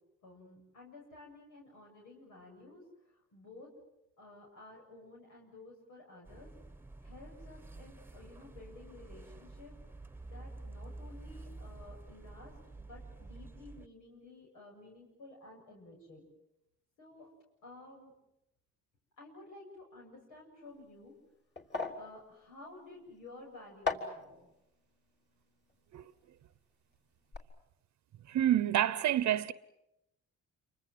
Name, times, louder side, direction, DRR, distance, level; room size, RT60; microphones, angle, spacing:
voice 1, 0.2-3.7 4.2-6.5 7.0-9.7 10.2-16.3 17.0-17.3 17.6-18.1 19.2-21.2 21.9-24.5, left 2 dB, 90° left, 7.5 m, -53 dB
sound 1, 6.3-13.9, right 2 dB, 5° right, 1.2 m, -49 dB
sound 2, 20.6-26.8 27.1-27.4, left 4 dB, 35° left, 3.7 m, -41 dB
voice 2, 28.3-29.5, right 11 dB, 70° right, 0.9 m, -28 dB
28.0 x 24.5 x 7.7 m
cardioid pair, 90°, 30 cm